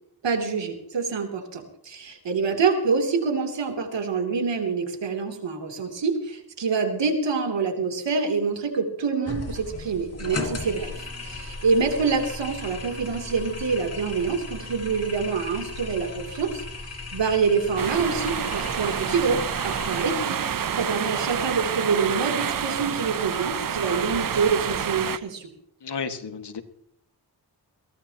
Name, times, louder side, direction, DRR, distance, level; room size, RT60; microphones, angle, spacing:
voice 1, 0.2-25.5, right 5 dB, 90° right, 3 dB, 3.1 m, -26 dB
sound 1, 9.3-20.1, left 2 dB, 35° left, 3.1 m, -36 dB
sound 2, 17.8-25.2, right 8 dB, 50° right, 0.7 m, -28 dB
voice 2, 25.8-26.6, left 5 dB, 70° left, 6 dB, 1.9 m, -32 dB
22.5 x 17.0 x 2.9 m, 0.73 s
wide cardioid pair, 110°, 42 cm